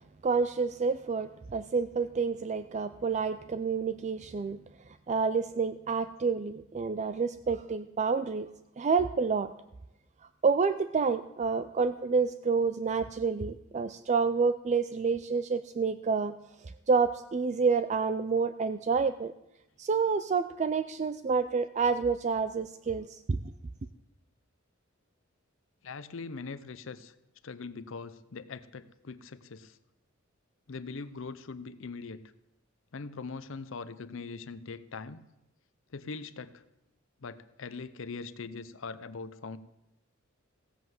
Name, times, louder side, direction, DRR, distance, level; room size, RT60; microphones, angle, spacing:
voice 1, 0.2-4.6 5.1-8.5 8.8-9.5 10.4-16.3 16.6-19.3 19.8-23.4, right 5 dB, 35° right, 12 dB, 0.4 m, -28 dB
voice 2, 25.8-27.1 27.4-29.8 30.7-32.2 32.9-35.2 35.9-36.6 37.2-39.6, left 4 dB, 65° left, 13 dB, 0.7 m, -41 dB
16.0 x 7.8 x 7.7 m, 0.90 s
head